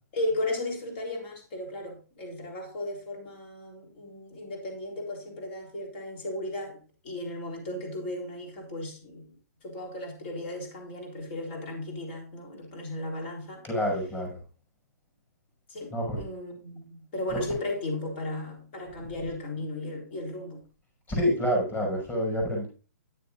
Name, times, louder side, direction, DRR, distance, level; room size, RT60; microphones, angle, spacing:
voice 1, 0.1-9.3 9.6-13.7 15.7-20.6, left 1 dB, 40° left, 3.7 m, -35 dB
voice 2, 13.6-14.3 15.9-16.2 17.3-17.4 21.1-22.7, equal, 15° left, 5.7 m, -27 dB
10.5 x 9.3 x 2.5 m
hypercardioid pair, 160°, 9 cm